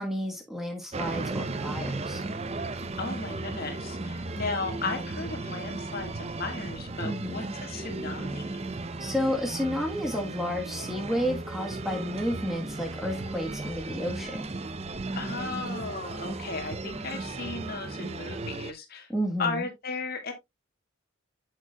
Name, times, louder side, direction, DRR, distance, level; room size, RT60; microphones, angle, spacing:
voice 1, 0.0-2.2 7.0-7.4 9.0-14.4 19.1-19.7, equal, ahead, 1.3 m, -31 dB
sound 1, 0.9-18.7, right 2 dB, 30° right, 0.6 m, -35 dB
voice 2, 3.0-8.5 15.2-19.1 19.4-20.3, left 3 dB, 45° left, 1.8 m, -35 dB
7.9 x 7.6 x 2.3 m
head